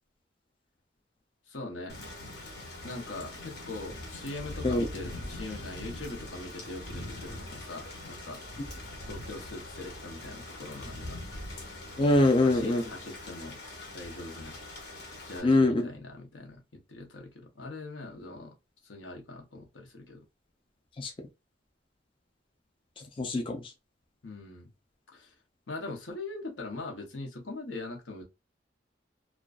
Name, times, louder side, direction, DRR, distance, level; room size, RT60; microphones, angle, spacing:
voice 1, 1.5-1.9 2.8-8.4 9.1-11.2 12.4-13.6 13.9-14.6 15.2-18.5 18.8-20.2 24.2-24.7 25.1-25.3 25.7-28.2, left 2 dB, 85° left, 0.8 m, -41 dB
Thunder / Rain, 1.9-15.4, left 1 dB, 60° left, 0.8 m, -42 dB
voice 2, 12.0-12.8 15.4-15.9 21.0-21.1 23.0-23.7, left 2 dB, 30° left, 0.3 m, -24 dB
2.4 x 2.2 x 2.3 m
head